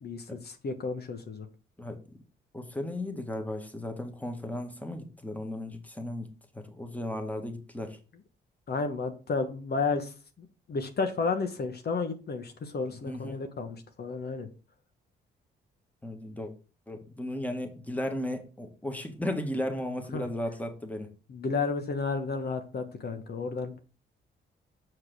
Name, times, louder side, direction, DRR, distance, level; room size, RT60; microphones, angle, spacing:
voice 1, 0.0-1.4 8.7-10.1 10.4-14.5 20.1-20.3 21.3-23.7, left 4 dB, 55° left, 1.3 m, -32 dB
voice 2, 2.5-6.3 6.5-8.0 12.9-13.4 16.0-16.5 16.9-21.1, left 1 dB, 5° left, 1.8 m, -35 dB
6.7 x 4.7 x 6.1 m
cardioid pair, 75°, 20 cm